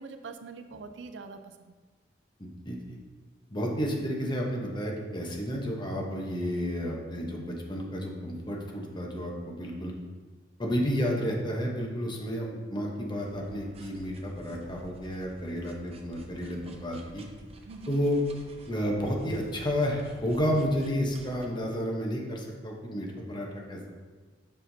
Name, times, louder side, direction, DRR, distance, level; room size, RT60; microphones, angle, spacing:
voice 1, 0.0-1.7 17.6-18.0, right 4 dB, 80° right, 8 dB, 0.4 m, -44 dB
voice 2, 2.4-3.0 3.5-9.9 10.6-17.2 17.9-18.2 18.7-23.9, equal, 25° left, 0 dB, 0.9 m, -31 dB
sound 1, 13.2-21.5, right 1 dB, 35° right, 0.6 m, -51 dB
7.3 x 5.7 x 2.7 m, 1.4 s
head